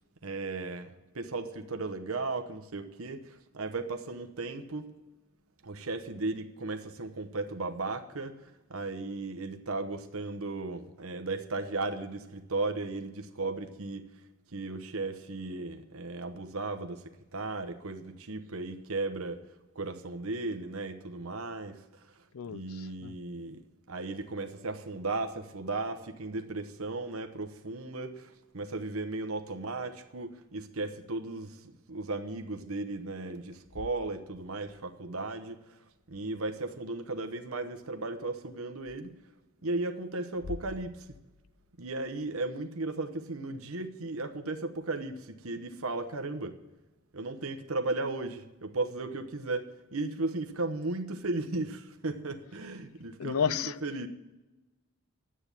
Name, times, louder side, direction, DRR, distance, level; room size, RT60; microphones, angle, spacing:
voice 1, 0.2-4.9 5.6-14.0 14.5-19.4 19.7-23.6 23.9-39.1 39.6-41.2 41.8-46.6 47.1-54.1, right 3 dB, 75° right, 8 dB, 1.0 m, -36 dB
voice 2, 22.3-23.1 53.2-53.7, left 7 dB, 75° left, 18 dB, 0.5 m, -32 dB
sound 1, 33.4-34.9 36.0-36.7 38.8-39.0 40.3-42.3, left 3 dB, 35° left, 0.6 m, -48 dB
11.0 x 8.8 x 8.3 m, 1.1 s
head